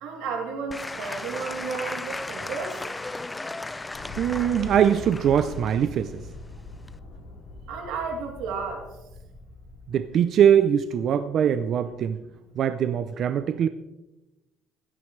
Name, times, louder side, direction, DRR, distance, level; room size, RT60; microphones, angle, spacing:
voice 1, 0.0-2.8 7.7-8.8, right 5 dB, 90° right, 1 dB, 3.0 m, -32 dB
Applause / Crowd, 0.7-7.0, left 2 dB, 10° left, 0.4 m, -36 dB
sound 1, 3.9-10.1, left 2 dB, 70° left, 4.1 m, -42 dB
voice 2, 4.2-6.1 9.9-12.2 12.6-13.7, right 9 dB, 45° right, 10 dB, 0.5 m, -22 dB
16.5 x 12.5 x 3.2 m, 1.0 s
cardioid pair, 160°, 0 cm